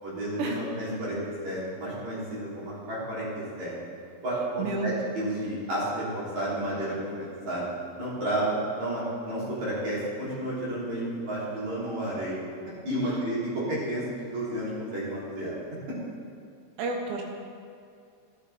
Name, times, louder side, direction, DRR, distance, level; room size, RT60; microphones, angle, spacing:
voice 1, 0.0-3.3 3.6-3.7 4.2-7.7 8.0-12.4 12.8-15.5, right 1 dB, 45° right, -8 dB, 4.0 m, -31 dB
voice 2, 4.6-4.9 13.0-13.2 16.8-17.2, right 3 dB, 80° right, 1 dB, 2.9 m, -30 dB
14.0 x 10.5 x 3.4 m, 2.3 s
omnidirectional pair, 5.3 m